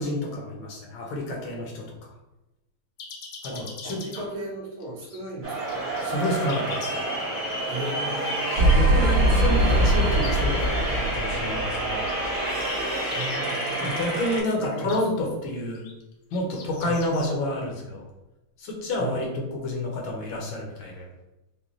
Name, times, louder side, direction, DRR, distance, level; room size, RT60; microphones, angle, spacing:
voice 1, 0.0-2.0 3.4-4.2 6.0-7.0 8.6-12.1 13.8-15.9 16.3-18.0 18.6-21.1, left 1 dB, 70° left, 0 dB, 1.4 m, -29 dB
sound 1, 3.0-4.2 4.8-5.2 5.6-6.9 7.7-10.4 11.7-15.0 15.7-17.4, left 5 dB, 85° left, 1.7 m, -42 dB
voice 2, 3.5-5.8 7.7-8.4 9.0-9.3 13.1-13.9 14.6-15.2 16.8-17.0 19.0-19.1, right 2 dB, 75° right, -4 dB, 2.0 m, -36 dB
sound 2, 5.4-14.4, right 1 dB, 35° right, 0.8 m, -29 dB
sound 3, 8.2-12.4, right 1 dB, 60° right, 1.9 m, -22 dB
5.0 x 2.3 x 3.0 m, 0.96 s
omnidirectional pair, 2.4 m